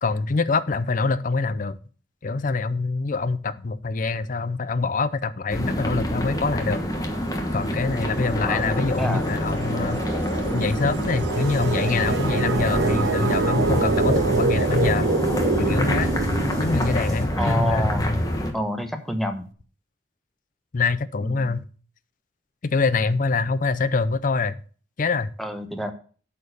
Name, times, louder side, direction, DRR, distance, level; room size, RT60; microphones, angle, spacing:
voice 1, 0.0-1.8 2.2-6.8 7.5-10.0 10.5-15.1 15.6-16.1 16.6-18.2 20.7-21.7 22.6-24.6 25.0-25.3, left 4 dB, 45° left, 15 dB, 0.5 m, -25 dB
sound 1, 5.5-18.5, equal, 20° left, 1.2 m, -26 dB
sound 2, 6.9-17.4, right 4 dB, 80° right, 0.6 m, -27 dB
voice 2, 8.4-9.2 17.4-18.1 18.5-19.5 21.2-21.5 25.4-25.9, equal, ahead, 6 dB, 0.9 m, -28 dB
sound 3, 11.3-17.3, left 1 dB, 20° right, 1.6 m, -39 dB
8.5 x 4.6 x 6.6 m, 0.41 s
head